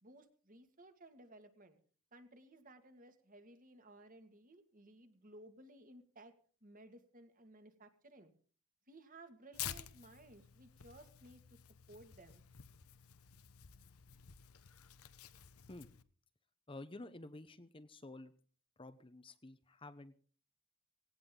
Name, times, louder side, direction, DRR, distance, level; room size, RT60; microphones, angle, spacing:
voice 1, 0.0-1.8 2.1-6.3 6.6-8.3 8.9-11.4 11.9-12.4, right 1 dB, 35° right, 7 dB, 2.0 m, -58 dB
Tearing, 9.5-16.0, left 10 dB, 80° left, 1.0 m, -51 dB
voice 2, 16.7-18.3 18.8-20.2, left 2 dB, 25° left, 11 dB, 0.8 m, -51 dB
18.5 x 17.0 x 3.8 m, 0.42 s
head